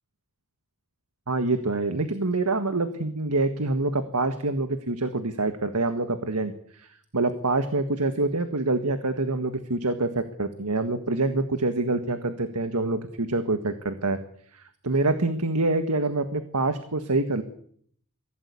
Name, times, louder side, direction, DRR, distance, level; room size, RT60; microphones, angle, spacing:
voice 1, 1.3-14.2 14.5-17.4, right 2 dB, 85° right, 9 dB, 1.7 m, -26 dB
23.5 x 16.5 x 8.4 m, 0.64 s
head